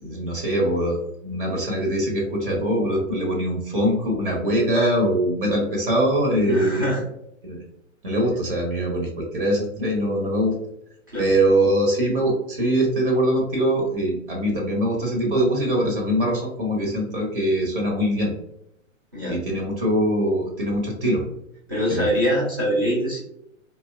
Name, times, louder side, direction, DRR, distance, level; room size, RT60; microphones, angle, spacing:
voice 1, 0.0-6.9 7.4-7.6 8.0-10.5 11.2-18.3 19.2-21.2 21.9-22.1, right 1 dB, 40° right, 0 dB, 0.7 m, -22 dB
voice 2, 6.4-7.0 11.1-11.3 19.1-19.4 21.7-23.2, equal, 20° right, -6 dB, 0.3 m, -23 dB
2.7 x 2.1 x 2.2 m, 0.78 s
figure-of-eight pair, 115°, 41 cm